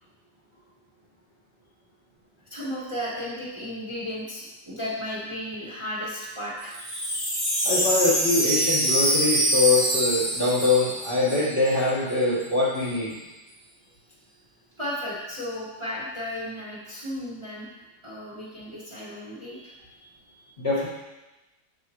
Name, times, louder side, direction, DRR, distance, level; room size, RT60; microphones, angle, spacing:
voice 1, 2.5-6.8 14.8-17.7 18.0-20.1 20.4-20.5, equal, 15° right, -7 dB, 1.7 m, -34 dB
Wind chime, 6.6-11.8 12.1-12.2 12.4-12.9, right 1 dB, 35° right, 2.2 m, -25 dB
voice 2, 7.6-13.2 20.6-20.9, left 3 dB, 30° left, -8 dB, 1.9 m, -23 dB
7.7 x 7.5 x 3.1 m, 1.1 s
omnidirectional pair, 1.9 m